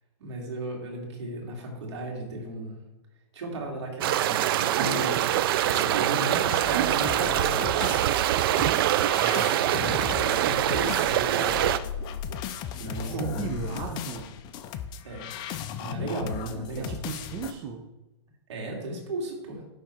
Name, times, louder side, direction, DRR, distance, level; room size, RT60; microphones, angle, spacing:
voice 1, 0.2-2.8 3.3-8.1 8.6-9.0 9.6-11.7 12.7-13.4 15.0-15.4 15.8-16.9 18.5-19.6, right 2 dB, 70° right, 0 dB, 2.5 m, -35 dB
sound 1, 4.0-11.8, right 12 dB, 50° right, 0.4 m, -24 dB
sound 2, 4.8-17.5, left 8 dB, 30° left, 0.5 m, -37 dB
voice 2, 9.2-9.6 13.0-14.3 16.8-17.8, right 6 dB, 30° right, 1 dB, 0.8 m, -36 dB
10.0 x 3.6 x 4.4 m, 1.0 s
hypercardioid pair, 135°, 15 cm